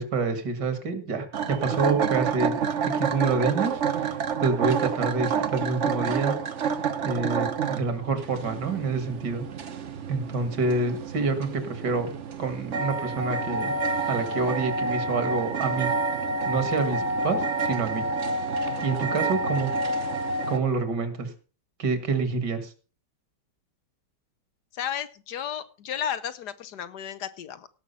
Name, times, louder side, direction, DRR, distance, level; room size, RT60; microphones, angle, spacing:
voice 1, 0.0-2.6 2.9-4.1 4.4-6.4 7.0-9.4 10.1-12.1 12.4-13.7 14.1-15.9 16.5-18.1 18.8-19.7 20.5-21.3 21.8-22.7, right 4 dB, 70° right, 10 dB, 2.4 m, -27 dB
sound 1, 1.3-20.6, right 4 dB, 50° right, 1.1 m, -28 dB
voice 2, 24.7-27.7, left 9 dB, 70° left, 13 dB, 1.4 m, -33 dB
17.0 x 6.2 x 5.5 m, 0.37 s
omnidirectional pair, 1.9 m